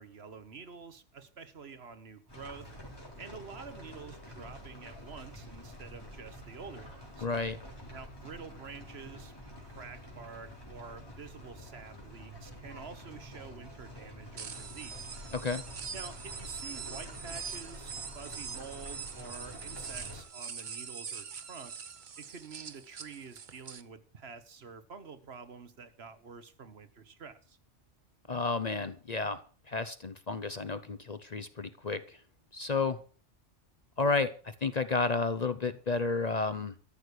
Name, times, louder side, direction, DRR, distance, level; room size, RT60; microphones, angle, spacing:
voice 1, 0.0-2.7 3.2-7.3 7.9-9.3 9.6-15.2 15.9-21.7 22.2-27.6, right 5 dB, 60° right, 11 dB, 1.4 m, -48 dB
sound 1, 2.3-20.2, equal, 20° left, 4.0 m, -48 dB
voice 2, 7.2-7.6 15.3-15.6 28.3-29.4 29.7-32.2 32.5-33.0 34.0-34.3 34.6-36.7, left 3 dB, 40° left, 12 dB, 0.8 m, -31 dB
sound 2, 14.4-23.8, right 6 dB, 45° right, 0.9 m, -43 dB
13.5 x 6.5 x 8.3 m, 0.41 s
omnidirectional pair, 1.2 m